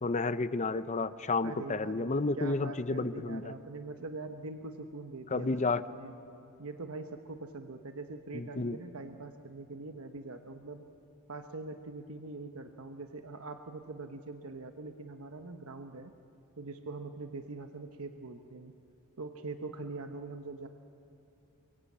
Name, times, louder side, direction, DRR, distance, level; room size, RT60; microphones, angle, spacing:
voice 1, 0.0-3.5 5.3-5.8 8.3-8.8, left 3 dB, 35° left, 13 dB, 0.7 m, -31 dB
voice 2, 1.4-6.1 6.6-10.8 11.3-16.1 16.6-18.7 19.2-20.7, right 3 dB, 70° right, 6 dB, 1.1 m, -43 dB
28.5 x 23.5 x 8.6 m, 2.9 s
head